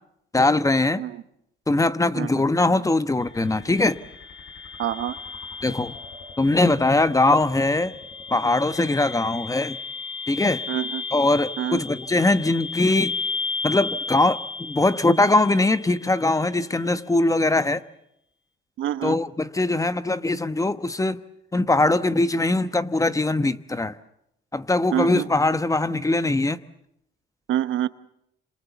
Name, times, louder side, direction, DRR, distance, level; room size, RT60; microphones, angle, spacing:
voice 1, 0.3-1.0 1.7-4.0 5.6-5.9 6.4-7.9 8.3-9.8 10.3-10.6 11.1-13.1 13.6-17.8 19.0-21.2 21.5-23.9 24.5-26.6, left 2 dB, 15° left, 1.1 m, -21 dB
sound 1, 3.2-16.2, left 4 dB, 75° left, 5.6 m, -35 dB
voice 2, 4.8-5.2 10.7-11.0 11.6-11.8 18.8-19.2 24.9-25.3 27.5-27.9, right 12 dB, 80° right, 1.0 m, -26 dB
27.5 x 27.0 x 7.1 m
cardioid pair, 90°, 20 cm